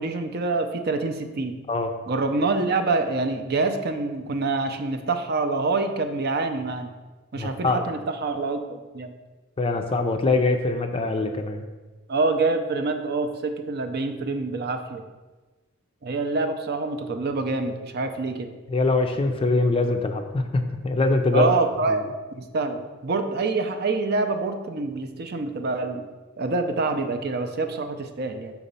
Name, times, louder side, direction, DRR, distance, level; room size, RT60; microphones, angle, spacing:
voice 1, 0.0-1.6 2.1-6.9 7.3-9.1 12.1-15.0 16.0-18.5 21.3-22.1 22.3-26.1 26.4-28.5, right 3 dB, 45° right, 6 dB, 0.5 m, -26 dB
voice 2, 7.4-7.8 9.6-11.6 18.7-21.5 21.9-22.0, left 3 dB, 25° left, 5 dB, 0.4 m, -23 dB
5.9 x 4.1 x 5.5 m, 1.2 s
head